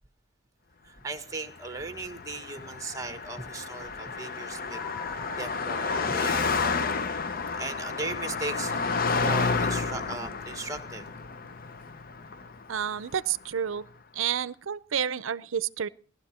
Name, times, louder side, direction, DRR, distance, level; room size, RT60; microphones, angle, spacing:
voice 1, 0.8-4.8 5.1-6.7 7.5-11.3, right 3 dB, 15° right, 7 dB, 1.4 m, -38 dB
Car passing by, 1.6-13.2, left 4 dB, 45° left, 0.7 m, -31 dB
sound 1, 4.1-11.6, left 2 dB, 70° left, 3.5 m, -58 dB
sound 2, 4.7-6.1 9.8-10.1, left 7 dB, ahead, 0.8 m, -44 dB
voice 2, 12.7-13.9 14.1-15.9, right 8 dB, 80° right, 17 dB, 0.5 m, -30 dB
18.0 x 12.5 x 4.3 m, 0.44 s
head